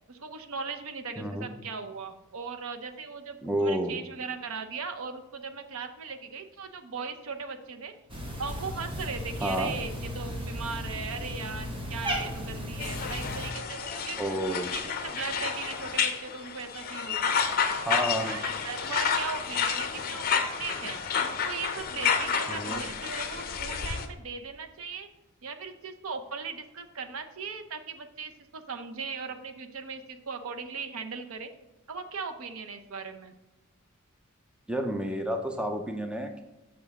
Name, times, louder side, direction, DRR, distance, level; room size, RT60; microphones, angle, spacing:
voice 1, 0.1-7.9 8.4-14.2 14.5-17.3 18.2-25.1 25.4-31.5 31.9-33.3, right 5 dB, 65° right, 8 dB, 0.6 m, -38 dB
voice 2, 1.2-1.5 3.4-4.0 9.4-9.8 14.2-14.7 17.8-18.4 22.5-22.8 34.7-36.4, right 1 dB, 5° right, 5 dB, 0.4 m, -30 dB
Cat, 8.1-13.5, equal, 25° right, 1.0 m, -35 dB
sound 1, 12.8-24.1, left 6 dB, 40° left, 0.6 m, -30 dB
6.4 x 5.8 x 3.6 m, 1.0 s
head